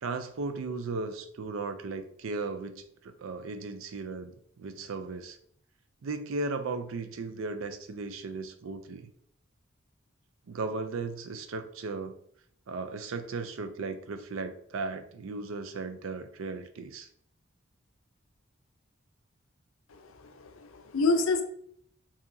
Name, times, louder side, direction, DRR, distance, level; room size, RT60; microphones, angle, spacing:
voice 1, 0.0-5.4 6.0-9.1 10.5-12.1 12.7-17.1, right 3 dB, 75° right, 8 dB, 0.4 m, -36 dB
voice 2, 20.4-21.4, left 3 dB, 80° left, 6 dB, 0.5 m, -27 dB
4.7 x 2.8 x 2.6 m, 0.66 s
head